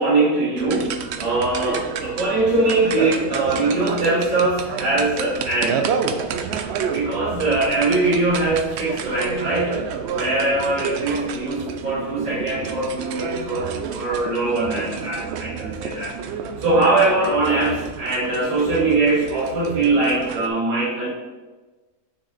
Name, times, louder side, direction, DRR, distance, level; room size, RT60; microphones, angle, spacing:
voice 1, 0.0-5.8 6.9-16.1 16.6-21.1, right 2 dB, 35° right, -9 dB, 2.3 m, -22 dB
sound 1, 0.6-20.5, right 6 dB, 65° right, 0.7 m, -29 dB
6.3 x 6.1 x 4.2 m, 1.3 s
omnidirectional pair, 1.6 m